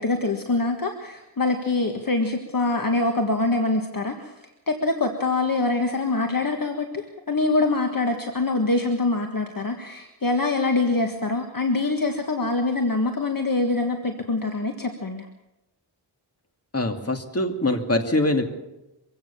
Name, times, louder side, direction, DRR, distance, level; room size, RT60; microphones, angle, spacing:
voice 1, 0.0-15.3, left 3 dB, 45° left, 4 dB, 1.8 m, -24 dB
voice 2, 16.7-18.4, left 1 dB, 30° left, 5 dB, 2.4 m, -23 dB
24.5 x 16.0 x 7.0 m, 0.95 s
wide cardioid pair, 110°, 44 cm